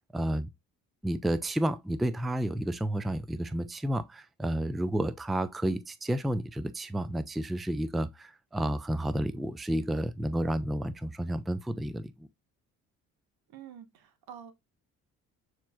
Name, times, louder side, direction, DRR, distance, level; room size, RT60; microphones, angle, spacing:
voice 1, 0.1-0.5 1.0-12.3, right 1 dB, ahead, 0.3 m, -31 dB
voice 2, 13.5-14.5, right 9 dB, 60° right, 1.1 m, -47 dB
6.8 x 3.1 x 2.3 m
hypercardioid pair, 55°, 41 cm